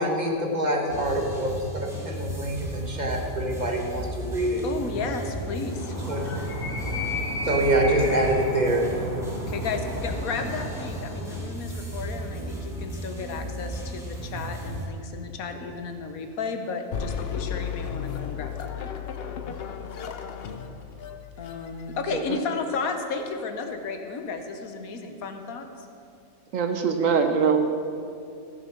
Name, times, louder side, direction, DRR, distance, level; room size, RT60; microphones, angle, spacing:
voice 1, 0.0-4.6 6.1-6.3 7.4-8.9, right 1 dB, 35° right, 1 dB, 1.3 m, -25 dB
sound 1, 0.9-14.9, right 1 dB, ahead, 1.7 m, -35 dB
voice 2, 4.6-6.0 9.5-18.9 21.4-25.9, left 4 dB, 80° left, 6 dB, 1.4 m, -33 dB
Animal, 5.6-11.5, left 1 dB, 30° left, 2.8 m, -33 dB
sound 2, 16.9-22.4, left 7 dB, 55° left, 0.8 m, -34 dB
voice 3, 26.5-27.6, right 6 dB, 70° right, 6 dB, 1.2 m, -22 dB
14.0 x 7.2 x 5.9 m, 2.6 s
omnidirectional pair, 1.5 m